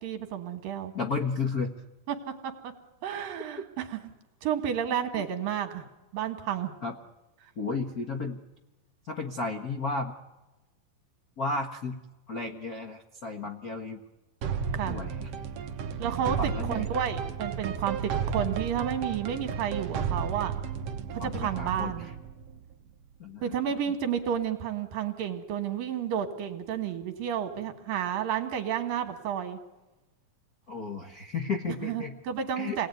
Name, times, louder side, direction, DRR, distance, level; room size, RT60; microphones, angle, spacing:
voice 1, 0.0-0.9 2.1-2.2 2.4-2.7 3.0-4.0 4.4-5.8 6.1-6.7 14.7-15.0 16.0-20.5 21.2-22.1 23.4-29.6 31.8-32.9, right 9 dB, 75° right, 6 dB, 3.6 m, -31 dB
voice 2, 0.9-1.7 5.1-5.3 6.8-6.9 7.6-8.4 9.0-10.1 11.4-12.0 12.3-14.0 14.8-15.3 16.4-17.0 21.2-22.1 23.2-23.8 30.7-32.1 32.5-32.8, left 4 dB, 60° left, 4 dB, 0.9 m, -33 dB
sound 1, 14.4-23.3, right 7 dB, 55° right, 1.9 m, -33 dB
28.5 x 19.5 x 9.5 m, 1.1 s
omnidirectional pair, 4.0 m